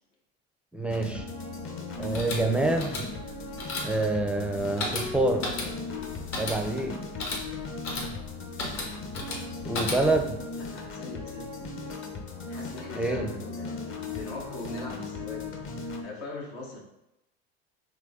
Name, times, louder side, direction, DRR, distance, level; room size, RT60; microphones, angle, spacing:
voice 1, 0.7-1.2 2.0-3.1 3.8-5.5 6.4-7.0 9.7-10.4 12.9-13.3, right 2 dB, 5° right, 4 dB, 0.4 m, -27 dB
sound 1, 0.9-16.0, left 3 dB, 40° left, 0.8 m, -38 dB
sound 2, 2.0-10.3, left 2 dB, 55° left, 1.3 m, -35 dB
voice 2, 9.5-10.0 10.5-12.0 12.5-15.5 15.8-16.8, left 2 dB, 75° left, -2 dB, 1.3 m, -42 dB
3.8 x 3.1 x 3.5 m, 0.90 s
supercardioid pair, 95°, 32 cm